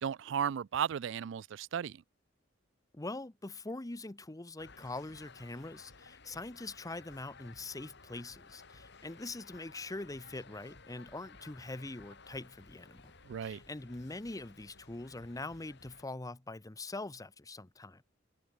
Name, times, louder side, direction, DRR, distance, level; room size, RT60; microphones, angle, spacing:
voice 1, 0.0-2.0 13.2-13.6, right 8 dB, 70° right, 0.4 m, -35 dB
voice 2, 2.9-13.1 13.4-18.0, left 2 dB, 20° left, 0.8 m, -43 dB
sound 1, 4.6-16.0, left 4 dB, 60° left, 3.9 m, -56 dB
head